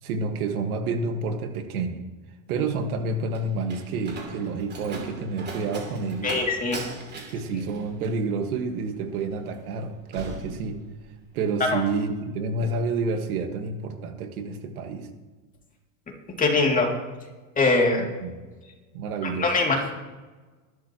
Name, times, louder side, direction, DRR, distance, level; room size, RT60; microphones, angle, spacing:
voice 1, 0.0-2.1 2.5-6.3 7.3-10.8 11.3-15.1 18.2-18.5 18.9-19.5, right 3 dB, 90° right, 6 dB, 1.8 m, -29 dB
Slam, 2.8-11.3 11.6-12.1, right 3 dB, 25° right, 2.9 m, -41 dB
voice 2, 6.2-6.8 11.7-11.8 16.4-16.9 17.6-18.0 19.2-19.9, left 3 dB, 20° left, 0 dB, 2.6 m, -22 dB
20.5 x 12.0 x 3.0 m, 1.3 s
supercardioid pair, 130°, 42 cm